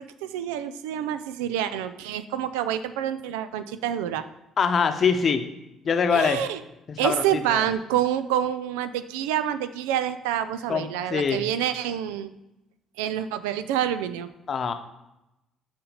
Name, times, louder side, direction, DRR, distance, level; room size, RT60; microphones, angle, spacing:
voice 1, 0.0-4.2 6.1-6.6 7.0-12.3 13.0-14.3, right 10 dB, 90° right, 12 dB, 0.3 m, -27 dB
voice 2, 4.6-5.4 5.8-6.4 6.9-7.7 10.7-11.5 14.5-14.7, left 6 dB, 50° left, 7 dB, 0.7 m, -24 dB
6.0 x 5.0 x 5.0 m, 0.93 s
supercardioid pair, 60°, 0 cm